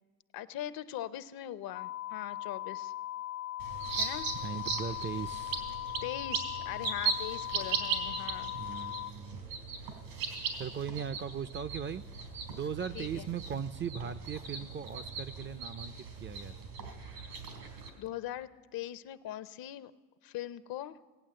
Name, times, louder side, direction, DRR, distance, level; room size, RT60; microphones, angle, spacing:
voice 1, 0.3-2.9 4.0-4.3 6.0-8.5 12.9-13.3 18.0-19.9 20.2-21.0, left 12 dB, 60° left, 14 dB, 0.7 m, -41 dB
sound 1, 1.7-9.1, left 14 dB, 90° left, 1.2 m, -39 dB
sound 2, 3.6-17.9, right 5 dB, 85° right, 3.7 m, -38 dB
voice 2, 4.4-5.6 8.5-9.4 10.5-12.0 12.5-16.7, right 7 dB, 30° right, 14 dB, 0.4 m, -39 dB
17.5 x 8.7 x 7.6 m, 1.3 s
supercardioid pair, 95°, 39 cm